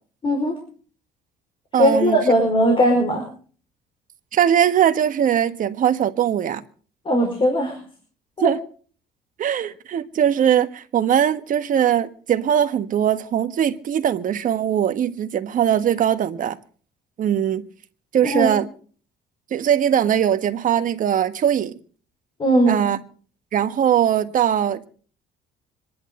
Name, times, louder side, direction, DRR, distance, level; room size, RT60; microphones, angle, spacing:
voice 1, 0.2-0.5 1.8-3.2 7.0-7.8 8.4-8.5 18.2-18.5 22.4-22.8, equal, 30° left, 5.1 m, -18 dB
voice 2, 1.7-2.2 4.3-6.6 8.4-8.6 9.4-16.6 17.2-17.6 18.1-18.7 19.5-21.7 22.7-23.0 23.5-24.9, right 9 dB, 50° right, 1.5 m, -20 dB
26.0 x 11.0 x 3.9 m
cardioid pair, 110°, 17 cm